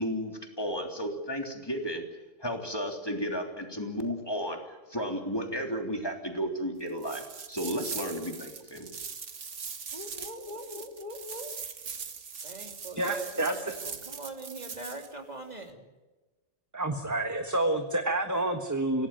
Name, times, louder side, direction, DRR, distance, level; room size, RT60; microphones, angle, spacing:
voice 1, 0.0-2.0 2.4-8.9, equal, 20° left, 3 dB, 3.4 m, -33 dB
sound 1, 7.0-15.1, right 6 dB, 75° right, 1.8 m, -41 dB
voice 2, 9.9-11.5 12.4-15.8, right 1 dB, 35° right, 4 dB, 3.3 m, -42 dB
voice 3, 13.0-13.7 16.7-19.1, right 2 dB, 15° right, 6 dB, 1.4 m, -29 dB
27.0 x 17.5 x 9.1 m, 1.2 s
omnidirectional pair, 1.2 m